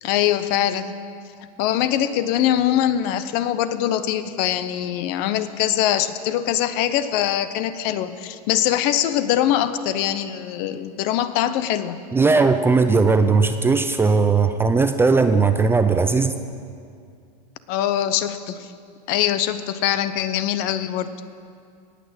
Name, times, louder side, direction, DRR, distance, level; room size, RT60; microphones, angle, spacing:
voice 1, 0.0-1.0 1.6-12.0 17.7-18.7 19.1-21.1, left 11 dB, 50° left, 13 dB, 0.8 m, -22 dB
voice 2, 12.1-16.4, right 4 dB, 10° right, 8 dB, 0.5 m, -18 dB
18.5 x 6.6 x 7.8 m, 2.3 s
supercardioid pair, 130°, 21 cm